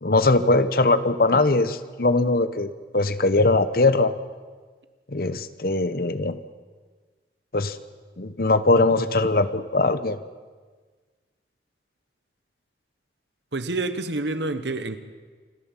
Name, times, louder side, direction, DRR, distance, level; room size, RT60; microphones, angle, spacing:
voice 1, 0.0-4.1 5.1-6.4 7.5-7.8 8.2-10.2, left 2 dB, 55° left, 13 dB, 1.0 m, -21 dB
voice 2, 13.5-15.0, right 2 dB, 85° right, 11 dB, 1.3 m, -28 dB
27.0 x 13.0 x 7.4 m, 1.5 s
head